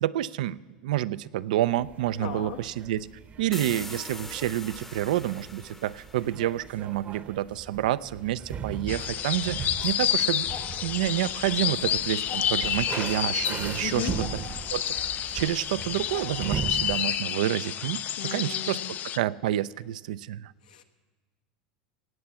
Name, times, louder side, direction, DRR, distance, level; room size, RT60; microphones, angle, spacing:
voice 1, 0.0-3.1 3.4-10.5 10.8-14.1 14.7-15.0 15.3-18.8 19.1-20.5, right 13 dB, 80° right, 16 dB, 0.4 m, -29 dB
sound 1, 1.8-17.0, right 7 dB, 35° right, 0.9 m, -39 dB
voice 2, 2.2-2.6 13.8-14.2 18.2-18.9 20.7-20.8, left 8 dB, 85° left, 4 dB, 1.4 m, -35 dB
sound 2, 3.5-7.1, left 2 dB, 10° left, 0.8 m, -43 dB
sound 3, 8.9-19.2, left 10 dB, 40° left, 0.4 m, -30 dB
17.5 x 8.6 x 7.0 m, 1.4 s
hypercardioid pair, 100°, 4 cm